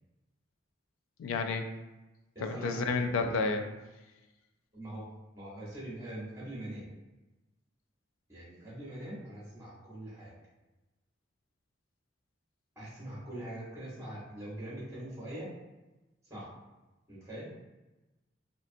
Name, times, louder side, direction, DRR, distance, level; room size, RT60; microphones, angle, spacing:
voice 1, 1.2-1.7 2.4-3.6, left 4 dB, 75° left, 7 dB, 0.3 m, -30 dB
voice 2, 2.3-3.1 4.7-5.1 5.3-6.9 8.3-10.3 12.8-15.5 16.3-16.5 17.1-17.5, right 1 dB, 15° right, -7 dB, 0.8 m, -42 dB
2.5 x 2.4 x 2.5 m, 1.1 s
head